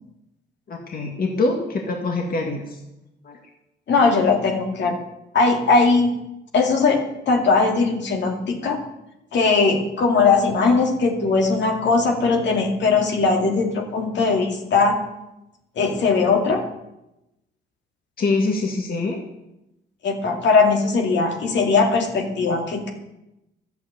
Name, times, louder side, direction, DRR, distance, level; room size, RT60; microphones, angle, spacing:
voice 1, 0.7-2.8 3.2-3.4 18.2-19.2, left 3 dB, 50° left, 2 dB, 2.0 m, -24 dB
voice 2, 3.9-5.0 5.3-6.1 6.5-8.8 9.3-15.0 15.8-16.6 20.0-22.9, left 4 dB, 65° left, 2 dB, 2.4 m, -19 dB
12.0 x 8.1 x 8.0 m, 0.90 s
cardioid pair, 90°, 20 cm